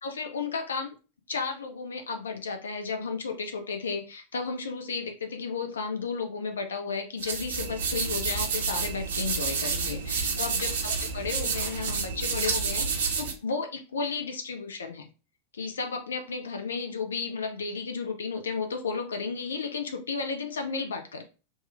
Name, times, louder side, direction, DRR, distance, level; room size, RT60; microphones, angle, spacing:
voice 1, 0.0-0.9 1.3-15.1 15.5-21.2, left 5 dB, 70° left, 5 dB, 0.4 m, -33 dB
sound 1, 7.2-13.3, right 5 dB, 60° right, 0.6 m, -29 dB
2.9 x 2.2 x 3.1 m, 0.33 s
figure-of-eight pair, 90°, 0 cm